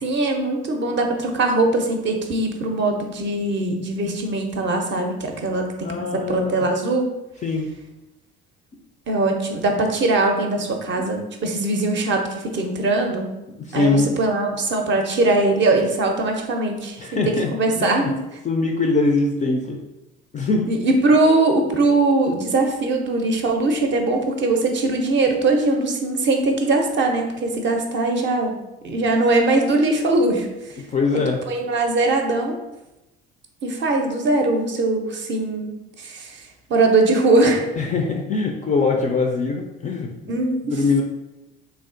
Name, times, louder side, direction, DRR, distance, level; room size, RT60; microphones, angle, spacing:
voice 1, 0.0-7.1 9.1-13.4 13.7-18.2 20.7-28.6 28.8-30.5 31.5-32.6 33.6-36.4 36.7-37.7 40.3-40.7, right 2 dB, 35° right, 3 dB, 0.6 m, -21 dB
voice 2, 5.8-6.7 7.4-7.7 13.6-14.2 17.0-17.5 17.8-18.1 18.4-19.8 20.3-20.7 30.9-31.4 37.8-40.3 40.7-41.0, left 3 dB, 25° left, 2 dB, 0.3 m, -22 dB
3.3 x 2.3 x 2.5 m, 0.97 s
hypercardioid pair, 60°, 32 cm